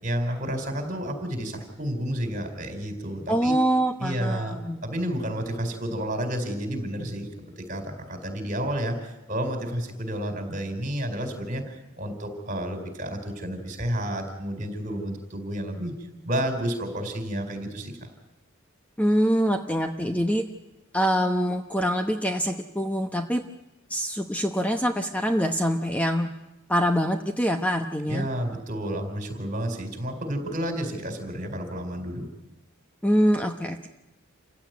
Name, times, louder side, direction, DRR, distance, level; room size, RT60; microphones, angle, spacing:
voice 1, 0.0-3.5 4.0-7.3 7.6-15.9 16.2-17.9 28.1-32.3, equal, 40° right, 5 dB, 4.4 m, -31 dB
voice 2, 3.3-4.8 19.0-20.4 20.9-23.4 23.9-26.3 26.7-28.3 33.0-33.9, equal, 5° left, 5 dB, 0.9 m, -24 dB
28.0 x 16.0 x 9.5 m, 0.98 s
head